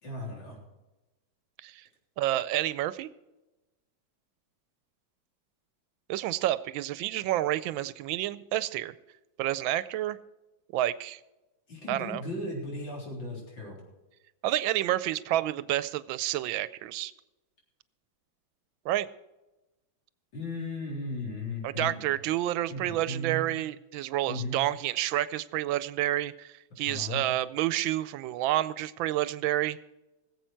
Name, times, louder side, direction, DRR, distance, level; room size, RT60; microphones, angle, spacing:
voice 1, 0.0-0.6 11.7-13.8 20.3-22.1 22.7-23.4 24.3-24.6 26.8-27.2, left 2 dB, 75° left, -2 dB, 4.5 m, -36 dB
voice 2, 2.2-3.1 6.1-8.9 9.4-10.2 10.7-11.2 11.9-12.2 14.4-17.1 18.8-19.1 21.6-29.8, right 14 dB, 90° right, 16 dB, 1.4 m, -29 dB
20.0 x 7.7 x 4.6 m, 1.1 s
omnidirectional pair, 2.1 m